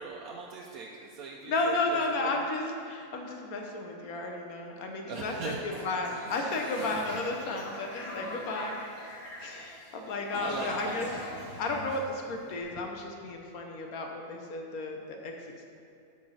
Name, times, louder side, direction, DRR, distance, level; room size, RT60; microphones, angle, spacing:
voice 1, 0.0-2.3 5.1-5.6 9.7-10.0 10.4-10.7 11.4-12.0, right 4 dB, 85° right, -1 dB, 1.1 m, -40 dB
voice 2, 1.5-5.5 5.8-8.8 9.4-11.1 11.6-15.6, left 2 dB, 80° left, 2 dB, 1.3 m, -33 dB
Toilet flush, 5.6-12.5, equal, 65° left, 2.0 m, -42 dB
8.5 x 4.2 x 6.3 m, 2.6 s
omnidirectional pair, 1.5 m